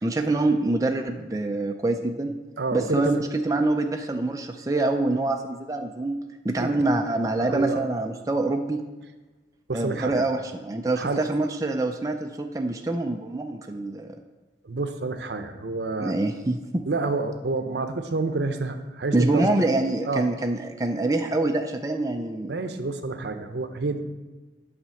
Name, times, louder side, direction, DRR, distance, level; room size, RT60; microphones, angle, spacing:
voice 1, 0.0-2.3 2.7-6.1 6.4-8.8 9.7-14.2 16.0-16.8 19.1-22.5, right 2 dB, 20° right, 4 dB, 0.4 m, -25 dB
voice 2, 2.6-3.2 6.6-6.7 7.4-7.8 9.7-10.3 11.0-11.2 14.6-16.1 16.8-19.5 20.1-20.2 22.5-24.0, right 3 dB, 70° right, 8 dB, 0.7 m, -28 dB
9.0 x 4.2 x 7.0 m, 1.2 s
head